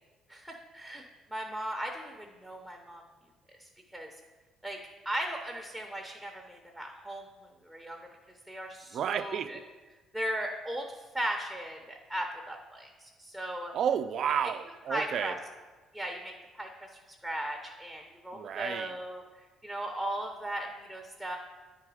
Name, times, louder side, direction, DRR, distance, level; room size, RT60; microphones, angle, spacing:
voice 1, 0.3-1.0 1.3-3.0 3.6-4.1 4.6-4.8 5.0-7.2 7.6-8.1 8.5-9.6 10.1-10.9 11.1-13.7 14.4-14.5 14.9-15.3 15.9-19.2 19.6-21.4, right 1 dB, ahead, 2 dB, 0.7 m, -37 dB
voice 2, 8.9-9.6 13.7-15.3 18.3-18.9, right 8 dB, 55° right, 11 dB, 0.4 m, -31 dB
9.6 x 3.8 x 4.8 m, 1.3 s
cardioid pair, 125°, 0 cm